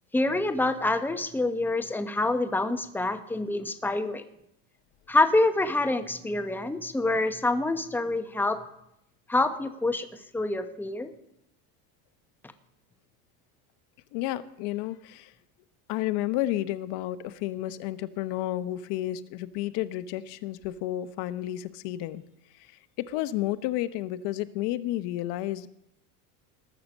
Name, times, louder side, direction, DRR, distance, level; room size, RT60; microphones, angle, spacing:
voice 1, 0.1-4.2 5.1-8.6 9.3-11.1, left 2 dB, 5° left, 9 dB, 1.0 m, -26 dB
voice 2, 14.1-15.3 15.9-22.2 22.6-22.7 23.0-25.7, left 14 dB, 60° left, 13 dB, 1.0 m, -31 dB
19.5 x 6.6 x 7.2 m, 0.80 s
supercardioid pair, 125°, 46 cm